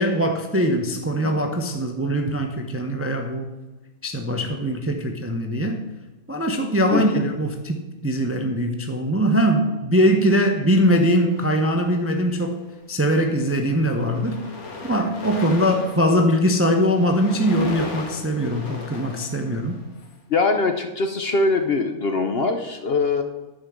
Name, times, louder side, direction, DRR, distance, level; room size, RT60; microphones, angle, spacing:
voice 1, 0.0-3.5 4.0-5.8 6.3-12.6 12.9-14.4 14.8-19.8, equal, 15° right, 4 dB, 0.5 m, -21 dB
voice 2, 6.9-7.2 20.3-23.2, left 3 dB, 55° left, 6 dB, 0.8 m, -22 dB
sound 1, 11.3-12.3 13.1-13.3 13.6-20.0, left 3 dB, 75° left, 2.0 m, -37 dB
10.0 x 5.2 x 7.3 m, 1.1 s
omnidirectional pair, 1.5 m